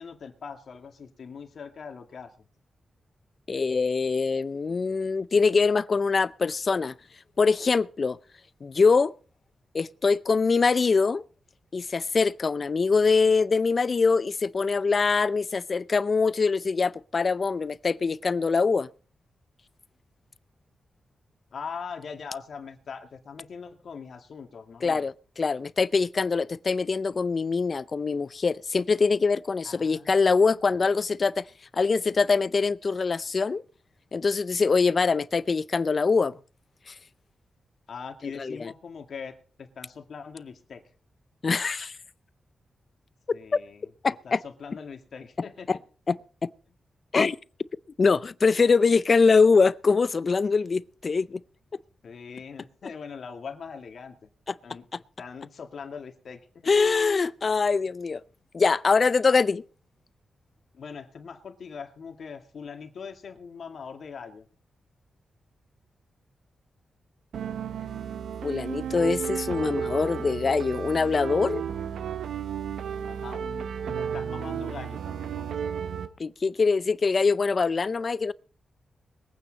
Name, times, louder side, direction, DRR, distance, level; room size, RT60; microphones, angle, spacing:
voice 1, 0.0-2.3 21.5-25.1 29.6-30.4 37.9-40.8 43.3-43.9 44.2-45.8 52.0-54.2 54.6-54.9 55.2-56.7 60.7-64.5 73.0-75.7, left 6 dB, 70° left, 2.1 m, -41 dB
voice 2, 3.5-6.9 7.4-8.2 8.6-9.1 9.7-11.2 11.7-18.9 24.8-31.4 31.7-33.6 34.1-36.3 36.9-37.0 38.3-38.7 41.4-41.9 44.0-44.4 45.7-45.8 46.1-46.2 47.1-47.4 48.0-51.4 56.7-58.2 58.5-59.6 68.4-71.6 76.2-78.3, left 4 dB, 50° left, 0.5 m, -23 dB
sound 1, 67.3-76.1, right 8 dB, 90° right, 0.9 m, -33 dB
22.0 x 9.1 x 4.0 m
cardioid pair, 65°, 0 cm